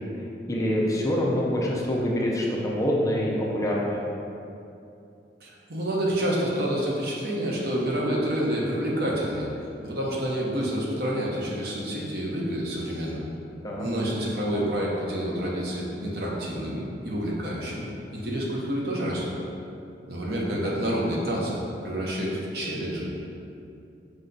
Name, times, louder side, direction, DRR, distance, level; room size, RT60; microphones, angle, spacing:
voice 1, 0.5-4.0 13.6-13.9, equal, 20° left, -3 dB, 0.4 m, -25 dB
voice 2, 5.4-9.5 9.8-13.2 13.8-17.9 18.1-19.3 20.1-23.2, equal, 60° right, -4 dB, 0.8 m, -28 dB
5.0 x 2.3 x 3.8 m, 2.7 s
head